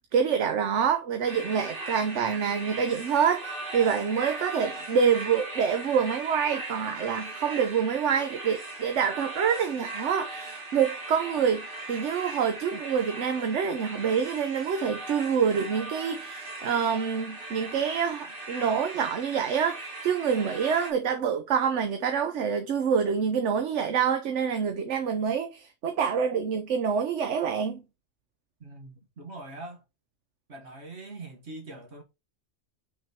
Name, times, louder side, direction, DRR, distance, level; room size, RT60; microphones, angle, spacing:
voice 1, 0.1-27.8, right 7 dB, 90° right, 1.1 m, -26 dB
sound 1, 1.3-20.9, right 2 dB, 50° right, 1.7 m, -39 dB
voice 2, 28.6-29.8 30.5-32.0, right 2 dB, 70° right, 1.9 m, -43 dB
6.0 x 3.8 x 4.3 m
omnidirectional pair, 1.2 m